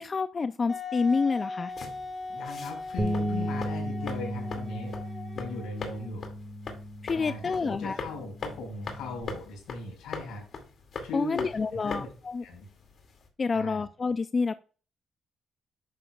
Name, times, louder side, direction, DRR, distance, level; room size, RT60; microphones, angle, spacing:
voice 1, 0.0-1.7 7.0-8.0 11.1-12.4 13.4-14.6, left 4 dB, 35° left, 12 dB, 0.4 m, -28 dB
Wind instrument woodwind instrument, 0.7-6.3, left 3 dB, 20° left, 2.3 m, -39 dB
sound 1, 1.7-13.3, left 4 dB, 55° left, 2.3 m, -42 dB
voice 2, 2.3-4.9 5.3-6.3 7.1-10.4 11.0-11.5 11.8-12.1 12.4-12.7 13.5-13.8, left 3 dB, 85° left, 2 dB, 4.7 m, -39 dB
Bass guitar, 3.0-9.2, equal, 10° right, 1.6 m, -35 dB
10.5 x 7.5 x 2.3 m, 0.37 s
cardioid pair, 90°, 0 cm